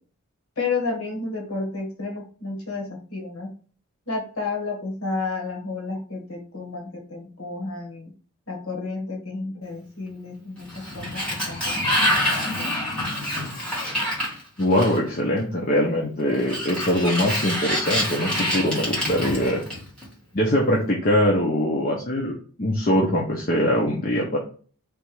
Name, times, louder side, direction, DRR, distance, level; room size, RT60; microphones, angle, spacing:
voice 1, 0.6-3.5 4.1-8.1 8.5-10.7 10.9-12.8, left 3 dB, 80° left, 1 dB, 1.5 m, -31 dB
Sliding door, 10.6-15.2 16.3-20.0, equal, 5° left, 1.4 m, -26 dB
voice 2, 14.6-19.6 20.3-24.4, left 1 dB, 40° left, -2 dB, 0.7 m, -22 dB
3.4 x 3.0 x 4.7 m, 0.41 s
head